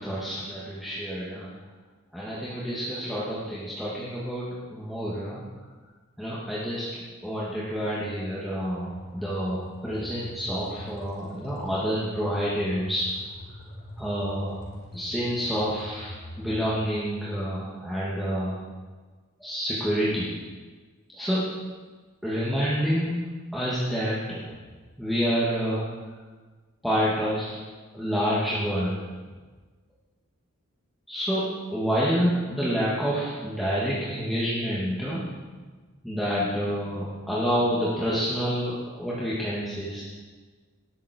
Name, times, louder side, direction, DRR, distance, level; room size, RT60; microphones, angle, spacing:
voice 1, 0.0-1.5 2.1-5.4 6.2-6.9 7.2-13.1 14.0-14.6 14.9-18.6 19.4-20.3 21.1-21.5 22.2-23.2 23.5-24.4 25.0-25.8 26.8-27.6 27.9-29.0 31.1-35.2 36.0-40.0, equal, ahead, -9 dB, 2.6 m, -28 dB
sound 1, 8.9-16.9, left 1 dB, 50° left, 4.6 m, -43 dB
20.0 x 12.5 x 4.8 m, 1.4 s
head